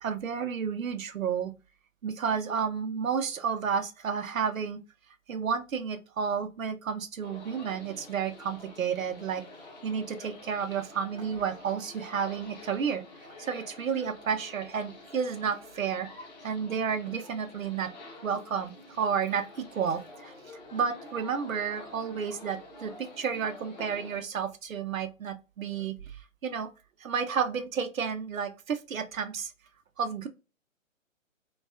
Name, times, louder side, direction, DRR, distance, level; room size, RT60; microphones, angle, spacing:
voice 1, 0.0-1.5 2.0-4.8 5.3-9.4 9.8-13.0 13.4-16.1 16.4-17.9 18.2-20.3 20.7-26.0 26.4-26.7 27.0-29.5 30.0-30.3, right 6 dB, 75° right, 0.6 m, -31 dB
sound 1, 7.2-24.2, left 2 dB, 35° left, 0.7 m, -48 dB
2.6 x 2.3 x 2.3 m
figure-of-eight pair, 145°, 40 cm